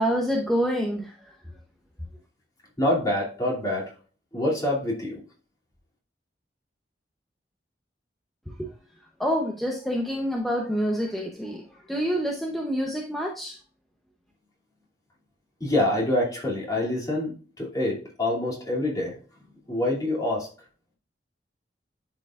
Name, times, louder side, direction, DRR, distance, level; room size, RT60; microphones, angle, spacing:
voice 1, 0.0-1.3 8.5-8.7 9.2-13.6, equal, ahead, -1 dB, 0.8 m, -27 dB
voice 2, 2.8-3.9 4.3-5.2 15.6-19.1 19.7-20.5, left 1 dB, 20° left, -4 dB, 2.6 m, -26 dB
10.5 x 4.8 x 2.4 m, 0.38 s
head